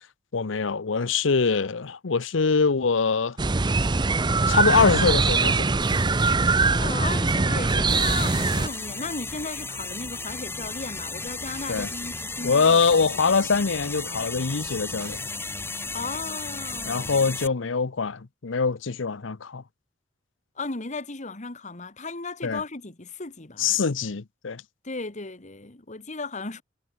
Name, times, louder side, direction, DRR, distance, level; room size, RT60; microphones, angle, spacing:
voice 1, 0.3-3.4 4.5-5.8 11.7-11.9 12.4-15.2 16.9-19.6 22.4-22.6 23.6-24.6, left 5 dB, 85° left, 0.8 m, -23 dB
sound 1, 3.4-8.7, right 3 dB, 25° right, 0.6 m, -22 dB
sound 2, 5.8-7.0 8.3-9.5 9.8-9.9 11.5-12.7 15.0-16.1, right 11 dB, 60° right, 7.1 m, -51 dB
voice 2, 6.7-12.8 13.1-13.5 15.9-17.2 20.6-23.9 24.8-26.6, left 3 dB, 40° left, 1.8 m, -35 dB
sound 3, 7.9-17.5, left 3 dB, 15° left, 4.0 m, -34 dB
head